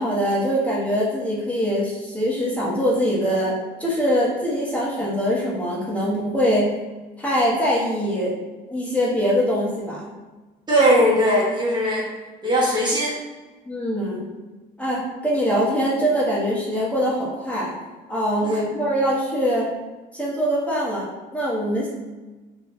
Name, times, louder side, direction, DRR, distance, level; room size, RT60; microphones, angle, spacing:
voice 1, 0.0-3.5 3.8-6.7 7.2-8.3 8.7-10.0 13.7-14.3 14.8-17.7 18.1-19.7 20.1-21.9, equal, 10° left, -7 dB, 1.2 m, -23 dB
voice 2, 10.7-12.1 12.4-13.2 18.4-18.8, equal, 25° right, -6 dB, 1.0 m, -19 dB
3.1 x 2.4 x 4.0 m, 1.2 s
cardioid pair, 110°, 17 cm